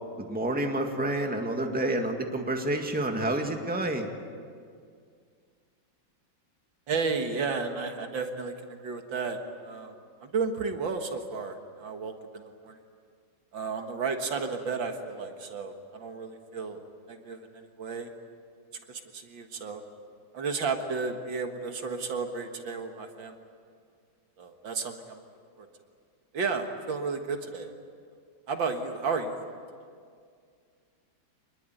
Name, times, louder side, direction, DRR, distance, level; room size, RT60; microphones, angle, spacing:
voice 1, 0.2-4.1, right 1 dB, 5° right, 3 dB, 1.8 m, -29 dB
voice 2, 6.9-9.9 10.2-12.8 13.5-16.8 17.1-18.1 18.9-19.8 20.3-23.4 24.4-25.2 25.6-25.7 26.3-27.7 28.5-29.4, right 4 dB, 70° right, 5 dB, 2.4 m, -33 dB
26.0 x 20.5 x 9.2 m, 2.2 s
omnidirectional pair, 2.1 m